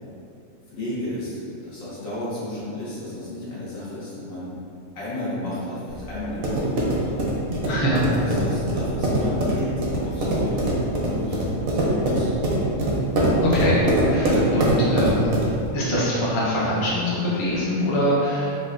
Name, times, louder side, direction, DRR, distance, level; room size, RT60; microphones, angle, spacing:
voice 1, 0.7-4.5 4.9-7.2 7.9-10.7 11.1-12.3, left 1 dB, 85° left, -9 dB, 1.4 m, -32 dB
sound 1, 5.9-15.7, right 1 dB, 60° right, 0.6 m, -23 dB
voice 2, 7.6-8.0 13.4-15.5 15.7-18.6, equal, 50° left, -6 dB, 0.3 m, -23 dB
3.7 x 2.2 x 2.4 m, 2.5 s
omnidirectional pair, 1.4 m